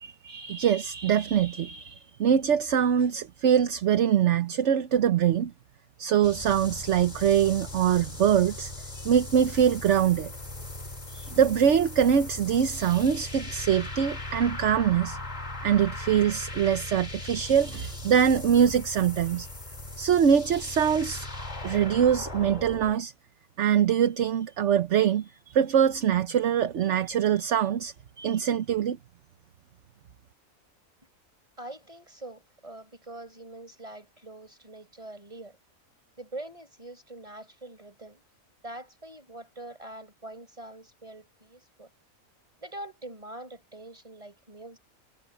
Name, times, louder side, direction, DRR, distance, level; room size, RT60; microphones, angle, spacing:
voice 1, 0.0-5.5 6.0-8.7 9.0-10.3 11.1-15.2 15.6-19.5 20.0-21.3 21.6-23.1 23.6-29.0, right 8 dB, 60° right, 1.1 m, -23 dB
sound 1, 6.2-22.9, left 2 dB, 30° left, 2.5 m, -39 dB
voice 2, 31.6-35.6 36.2-38.2 38.6-41.9 42.6-44.8, right 1 dB, 25° right, 6.1 m, -44 dB
omnidirectional pair, 1.5 m